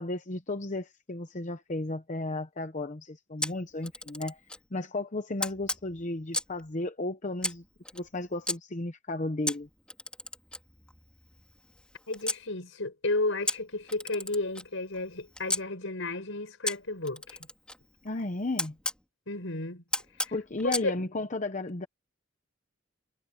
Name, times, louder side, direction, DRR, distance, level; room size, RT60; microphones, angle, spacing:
voice 1, 0.0-4.4 4.7-7.6 7.9-9.7 18.0-18.8 20.3-21.9, left 2 dB, 40° left, 0.9 m, -34 dB
Camera, 3.4-4.7 5.4-6.6 7.4-8.6 9.5-12.4 13.5-15.6 16.7-19.0 19.9-20.9, left 1 dB, 5° left, 3.7 m, -35 dB
voice 2, 12.1-17.4 19.3-19.8 20.2-20.3 20.6-20.9, left 2 dB, 75° left, 5.5 m, -32 dB
head